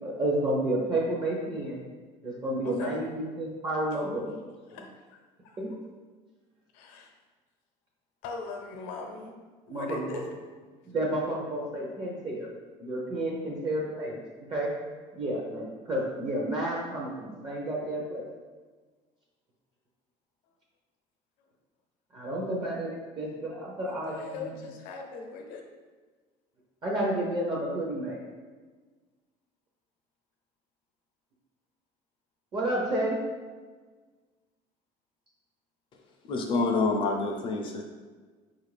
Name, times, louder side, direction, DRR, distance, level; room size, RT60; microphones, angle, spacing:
voice 1, 0.0-1.8 2.2-4.4 5.6-5.7 9.7-10.2 10.9-12.5 12.8-14.2 14.5-14.7 15.1-18.3 22.1-24.5 26.8-28.2 32.5-33.2, right 1 dB, 35° right, -3 dB, 0.6 m, -31 dB
voice 2, 2.6-3.0 4.7-4.9 5.4-5.7 6.7-7.1 8.2-9.3 9.7-10.3 23.8-25.6, left 4 dB, 80° left, 3 dB, 0.6 m, -40 dB
voice 3, 36.3-37.8, left 3 dB, 35° left, 2 dB, 0.4 m, -27 dB
5.0 x 2.4 x 3.2 m, 1.4 s
cardioid pair, 145°, 14 cm